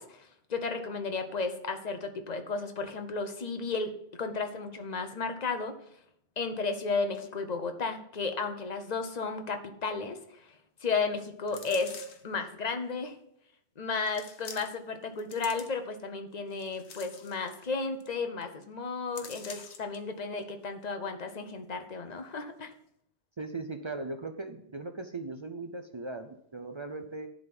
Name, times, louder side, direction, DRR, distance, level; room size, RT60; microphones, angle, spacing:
voice 1, 0.0-3.9 4.2-5.7 6.4-10.5 10.8-11.9 12.2-13.1 13.8-22.7, left 4 dB, 40° left, 7 dB, 0.9 m, -33 dB
sound 1, 11.5-12.3 13.1-13.2 14.1-14.9 15.2-16.0 16.5-17.7 18.0-18.1 18.4-18.6 19.1-20.0 20.4-20.5, left 6 dB, 75° left, 1.2 m, -47 dB
voice 2, 23.4-27.3, right 3 dB, 40° right, 6 dB, 0.4 m, -39 dB
11.0 x 3.8 x 5.9 m, 0.72 s
omnidirectional pair, 1.1 m